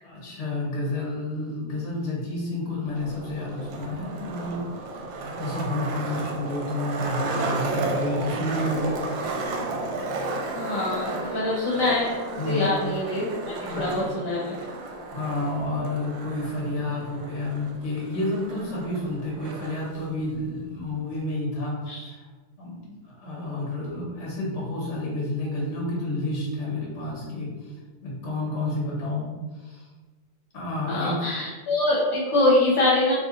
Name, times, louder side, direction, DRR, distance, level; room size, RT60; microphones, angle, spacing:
voice 1, 0.0-5.1 5.4-9.0 10.0-10.1 12.4-12.7 13.7-14.0 15.1-22.2 22.6-27.7 28.0-29.3 29.6-29.9 30.5-31.1, left 2 dB, 45° left, -5 dB, 1.3 m, -30 dB
Skateboard, 2.9-19.9, right 2 dB, 80° right, 1.3 m, -33 dB
voice 2, 10.5-14.6 21.9-22.1 30.9-33.1, left 2 dB, 70° left, -7 dB, 1.4 m, -24 dB
3.2 x 2.6 x 3.7 m, 1.3 s
omnidirectional pair, 2.1 m